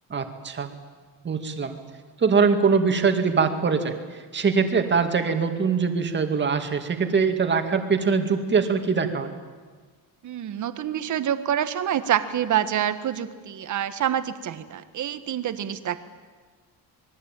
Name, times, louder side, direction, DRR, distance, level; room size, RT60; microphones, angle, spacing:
voice 1, 0.1-0.7 1.2-1.8 2.2-4.0 4.3-9.3, right 5 dB, 30° right, 6 dB, 2.3 m, -22 dB
voice 2, 10.2-16.0, right 10 dB, 50° right, 11 dB, 1.5 m, -27 dB
26.5 x 21.5 x 9.1 m, 1.5 s
cardioid pair, 170°, 39 cm